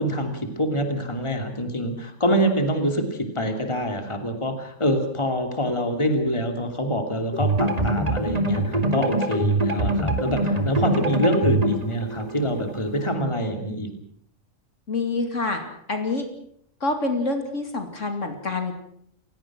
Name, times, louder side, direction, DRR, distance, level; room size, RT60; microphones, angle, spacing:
voice 1, 0.0-13.9, equal, 20° left, 5 dB, 2.9 m, -25 dB
sound 1, 7.3-13.1, right 2 dB, 30° right, 2.4 m, -24 dB
voice 2, 14.9-15.6 15.9-16.3 16.8-18.7, left 3 dB, 60° left, 5 dB, 2.9 m, -26 dB
29.5 x 17.0 x 6.2 m, 0.68 s
omnidirectional pair, 1.4 m